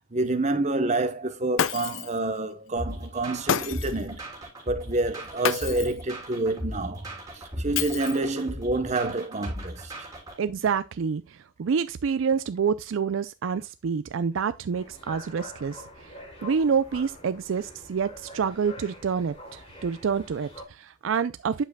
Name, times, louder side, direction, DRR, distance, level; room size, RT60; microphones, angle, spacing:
voice 1, 0.1-4.2 4.7-7.1 7.3-9.9, right 2 dB, 35° right, 0.9 m, -28 dB
Shatter, 1.6-2.2 3.5-4.0 5.4-6.0 7.7-8.4, left 8 dB, 75° left, 0.5 m, -29 dB
sound 1, 2.8-10.4, equal, 15° right, 3.2 m, -37 dB
voice 2, 10.4-16.1 16.4-21.6, right 6 dB, 70° right, 0.4 m, -27 dB
sound 2, 14.7-20.6, left 1 dB, 30° left, 3.2 m, -45 dB
8.9 x 7.2 x 2.2 m
head